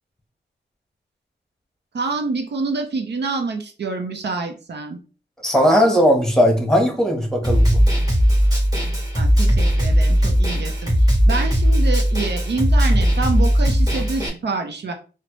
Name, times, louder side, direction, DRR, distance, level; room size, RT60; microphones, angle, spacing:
voice 1, 1.9-5.0 9.2-14.9, right 3 dB, 65° right, 5 dB, 0.6 m, -27 dB
voice 2, 5.4-7.8 13.9-14.0, equal, 5° left, 2 dB, 1.1 m, -17 dB
Snare drum, 7.4-14.3, equal, 20° right, 1.7 m, -17 dB
4.1 x 2.1 x 3.0 m, 0.35 s
cardioid pair, 65°, 19 cm